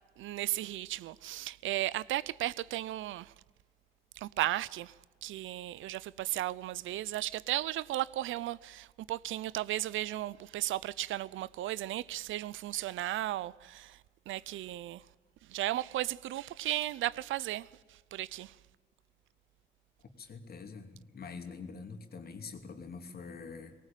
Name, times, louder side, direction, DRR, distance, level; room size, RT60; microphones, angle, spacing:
voice 1, 0.2-3.3 4.2-4.9 5.2-14.0 14.3-15.0 15.5-18.6, right 15 dB, 80° right, 0.6 m, -35 dB
voice 2, 20.2-23.7, left 5 dB, 50° left, 2.9 m, -45 dB
19.5 x 18.0 x 9.1 m
cardioid pair, 90°, 20 cm